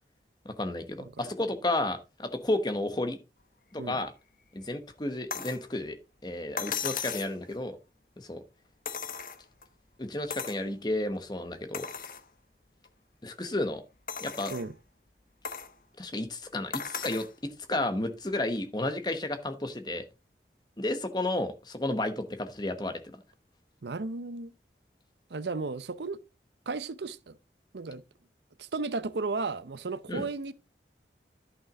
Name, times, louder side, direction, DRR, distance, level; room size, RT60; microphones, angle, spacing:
voice 1, 0.4-3.2 3.7-4.1 4.5-6.0 6.2-7.8 8.2-8.4 10.0-11.9 13.2-13.8 14.2-14.5 16.0-20.0 20.8-23.2 30.1-30.2, left 1 dB, 25° left, 1.1 m, -32 dB
sound 1, 5.3-5.6 6.6-7.4 8.8-9.6 10.3-10.6 11.1-11.2 11.7-12.2 12.8-12.9 14.1-14.7 15.4-15.7 16.7-17.3 18.6-18.7, left 6 dB, 50° left, 0.9 m, -36 dB
voice 2, 23.8-24.5 25.3-26.2 26.7-27.4 27.7-28.0 28.6-30.5, right 3 dB, 75° right, 0.6 m, -34 dB
11.0 x 6.1 x 3.7 m
head